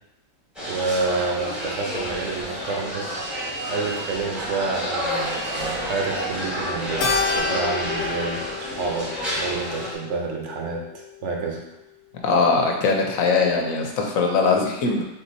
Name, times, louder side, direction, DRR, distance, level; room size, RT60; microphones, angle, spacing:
sound 1, 0.5-9.9, equal, ahead, 1.1 m, -29 dB
voice 1, 0.7-3.1 3.7-8.4 8.7-11.6, right 4 dB, 65° right, 1 dB, 1.0 m, -28 dB
Keyboard (musical), 7.0-11.6, left 5 dB, 70° left, 0.9 m, -30 dB
voice 2, 12.1-15.0, left 4 dB, 90° left, 2 dB, 1.1 m, -21 dB
3.7 x 2.9 x 4.0 m, 0.88 s
omnidirectional pair, 1.4 m